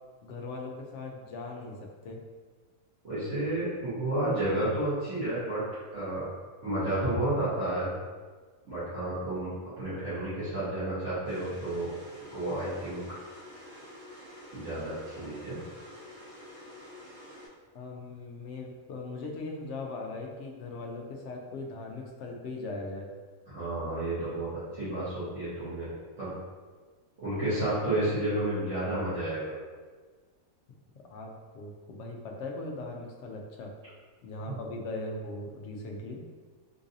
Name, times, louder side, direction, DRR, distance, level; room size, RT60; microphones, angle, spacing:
voice 1, 0.2-2.2 17.7-23.1 30.7-30.8 31.1-33.7 34.2-36.2, left 2 dB, 65° left, 1 dB, 0.8 m, -39 dB
voice 2, 3.0-5.6 5.9-6.3 6.6-7.9 8.6-9.5 9.8-11.9 12.3-13.0 14.5-15.6 23.5-25.9 26.2-26.3 27.2-29.5 34.5-34.6, right 1 dB, 60° right, -14 dB, 1.5 m, -31 dB
sound 1, 11.2-17.5, left 1 dB, 85° right, 1.6 m, -48 dB
3.8 x 2.6 x 2.6 m, 1.4 s
omnidirectional pair, 1.5 m